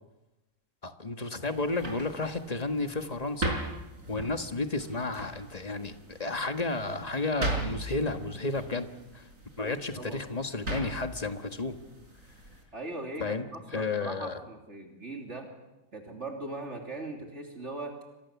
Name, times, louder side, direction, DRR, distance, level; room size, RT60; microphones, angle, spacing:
voice 1, 0.8-3.6 4.1-8.9 9.1-9.3 9.6-11.8 13.2-13.4 13.7-14.4, left 3 dB, 30° left, 7 dB, 1.7 m, -32 dB
sound 1, 1.5-12.6, right 2 dB, 75° right, 5.4 m, -39 dB
voice 2, 9.6-10.3 12.7-15.5 15.9-18.0, right 2 dB, 55° right, 2 dB, 3.5 m, -40 dB
29.0 x 25.0 x 7.2 m, 1.0 s
omnidirectional pair, 1.4 m